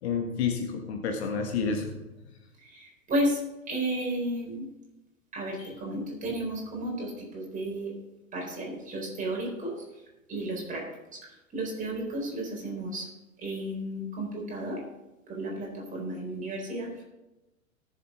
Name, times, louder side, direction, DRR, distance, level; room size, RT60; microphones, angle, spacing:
voice 1, 0.0-1.9 5.6-5.7, left 5 dB, 50° left, 4 dB, 1.6 m, -29 dB
voice 2, 2.6-3.4 3.7-4.7 5.3-7.9 8.3-9.9 10.3-10.8 11.1-13.1 13.4-14.8 15.3-17.0, right 1 dB, 20° right, -2 dB, 4.5 m, -33 dB
18.0 x 7.2 x 3.8 m, 0.99 s
figure-of-eight pair, 100°, 41 cm